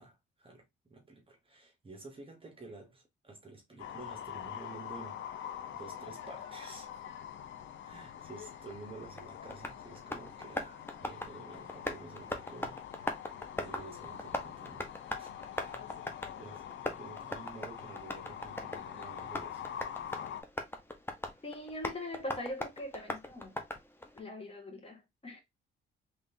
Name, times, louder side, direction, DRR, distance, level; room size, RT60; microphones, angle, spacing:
voice 1, 0.0-7.0 7.8-12.8 13.2-13.3 13.6-14.8 15.2-15.9 16.4-19.6 20.0-20.2, right 3 dB, 25° right, 1.1 m, -51 dB
sound 1, 3.8-20.4, left 9 dB, 70° left, 0.6 m, -45 dB
Tap, 8.7-24.2, left 1 dB, 10° left, 0.9 m, -41 dB
voice 2, 21.4-23.6 24.1-25.4, left 1 dB, 30° left, 1.8 m, -42 dB
3.7 x 3.3 x 2.7 m
cardioid pair, 90°, 20 cm